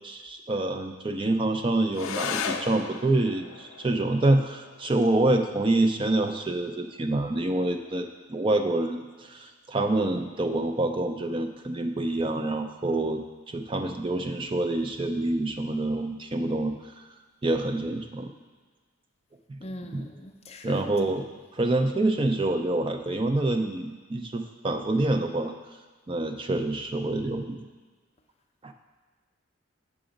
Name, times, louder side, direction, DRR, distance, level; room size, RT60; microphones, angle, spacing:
voice 1, 0.0-13.2 13.5-16.7 17.4-18.3 19.5-19.6 19.9-20.0 20.6-21.2 21.5-25.5 26.1-27.6 28.6-28.7, right 2 dB, 25° right, 6 dB, 0.4 m, -26 dB
sound 1, 1.9-10.9, left 6 dB, 85° left, 0.5 m, -39 dB
voice 2, 19.6-20.8, left 1 dB, 30° left, 3 dB, 0.5 m, -40 dB
6.0 x 4.9 x 5.1 m, 1.4 s
head